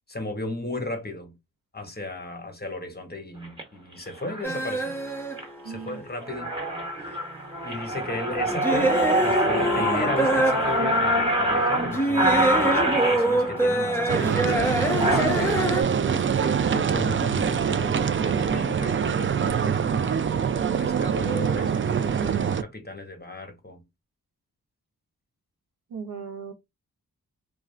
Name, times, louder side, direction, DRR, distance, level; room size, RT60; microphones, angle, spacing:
voice 1, 0.1-1.3 1.7-5.0 5.6-6.5 7.0-7.2 7.6-14.7 15.0-16.0 16.4-20.4 20.8-23.8, left 2 dB, 25° left, 1.1 m, -35 dB
sound 1, 3.4-3.6 4.3-4.5 5.0-5.5 5.9-6.0 6.2-15.6, right 1 dB, 15° right, 1.1 m, -25 dB
sound 2, 4.4-6.2 6.6-11.1 11.8-15.8, right 1 dB, 5° left, 0.8 m, -26 dB
voice 2, 5.6-6.0 21.2-22.1 25.9-26.5, right 5 dB, 85° right, 0.6 m, -38 dB
sound 3, 14.1-22.6, right 7 dB, 35° right, 0.4 m, -24 dB
2.4 x 2.2 x 3.2 m
cardioid pair, 40°, 36 cm